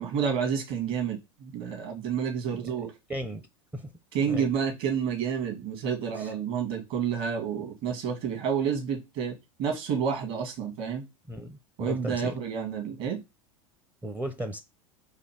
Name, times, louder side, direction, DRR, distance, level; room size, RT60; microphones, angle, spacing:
voice 1, 0.0-2.9 4.1-11.0 11.8-13.2, right 7 dB, 55° right, 1.9 m, -30 dB
voice 2, 3.1-3.4 3.7-3.9 4.3-4.5 11.3-12.4 14.0-14.6, equal, 10° right, 0.5 m, -35 dB
4.1 x 2.7 x 4.4 m
hypercardioid pair, 85°, 18 cm